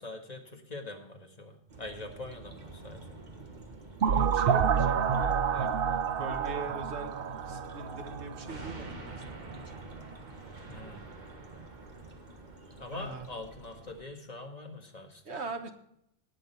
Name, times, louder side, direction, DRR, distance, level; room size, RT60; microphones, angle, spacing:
voice 1, 0.0-3.2 10.7-11.1 12.8-15.5, left 2 dB, 35° left, 3 dB, 1.8 m, -44 dB
sound 1, 1.7-14.0, right 2 dB, 45° right, 1.6 m, -47 dB
sound 2, 4.0-8.7, right 7 dB, 60° right, 0.9 m, -28 dB
voice 2, 4.0-5.7 6.2-7.1 7.5-9.6 12.9-13.3 15.2-15.7, right 3 dB, 75° right, 6 dB, 1.6 m, -41 dB
18.0 x 6.5 x 4.5 m, 0.78 s
omnidirectional pair, 1.1 m